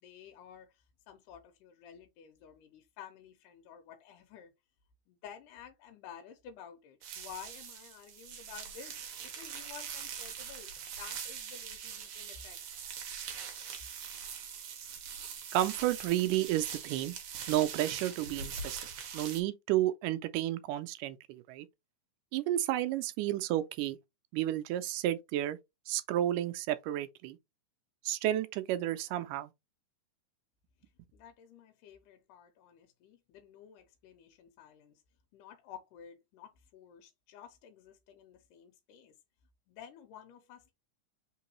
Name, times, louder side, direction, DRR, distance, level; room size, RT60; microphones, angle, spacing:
voice 1, 0.0-4.5 5.1-9.0 9.2-12.6 31.1-35.0 35.3-39.1 39.7-40.7, left 8 dB, 90° left, 2.3 m, -52 dB
sound 1, 7.0-19.4, right 7 dB, 65° right, 1.9 m, -42 dB
voice 2, 15.5-17.2 17.5-18.8 19.1-21.7 22.3-24.0 24.3-25.6 25.9-27.4 28.1-29.5, right 13 dB, 85° right, 2.2 m, -31 dB
4.6 x 3.8 x 3.0 m
omnidirectional pair, 3.6 m